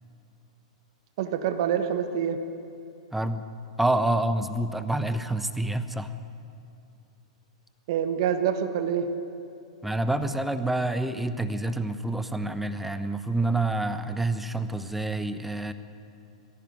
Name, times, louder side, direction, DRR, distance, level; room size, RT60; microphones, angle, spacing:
voice 1, 1.2-2.4 7.9-9.1, right 8 dB, 55° right, 8 dB, 1.5 m, -26 dB
voice 2, 3.1-3.5 3.8-6.1 9.8-15.7, right 2 dB, 5° right, 10 dB, 1.0 m, -27 dB
20.5 x 16.0 x 9.5 m, 2.6 s
hypercardioid pair, 105°, 3 cm